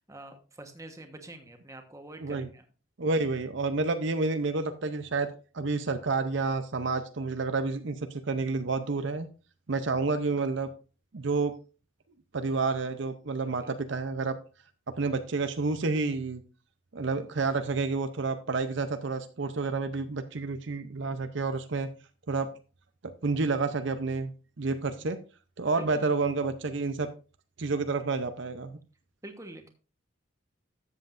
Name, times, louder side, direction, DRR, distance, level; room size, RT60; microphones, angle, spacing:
voice 1, 0.0-2.7 13.6-13.7 25.8-26.1 29.2-29.7, right 1 dB, 15° right, 5 dB, 1.1 m, -46 dB
voice 2, 3.0-5.3 5.5-9.3 9.7-10.7 11.1-11.5 12.3-14.4 15.0-16.4 16.9-21.9 22.3-22.5 23.0-24.3 24.6-25.2 25.6-27.1 27.6-28.8, right 3 dB, 60° right, 9 dB, 0.6 m, -29 dB
13.0 x 7.7 x 2.5 m, 0.34 s
head